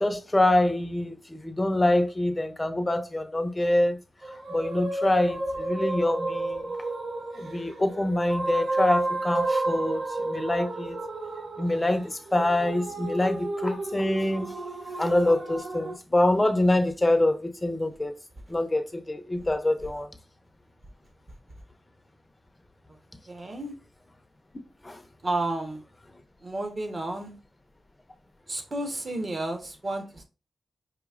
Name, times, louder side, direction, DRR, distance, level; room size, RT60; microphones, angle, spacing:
voice 1, 0.0-4.0 4.5-6.7 7.4-11.0 11.6-14.5 15.0-18.1 18.5-20.1 24.8-25.0, left 1 dB, 20° left, 0.6 m, -25 dB
sound 1, 4.2-16.0, right 2 dB, 70° right, 0.8 m, -31 dB
voice 2, 23.3-23.7 25.2-25.8 26.4-27.3 28.5-30.2, right 2 dB, 45° right, 1.1 m, -31 dB
4.9 x 2.7 x 2.5 m
cardioid pair, 60°, 0 cm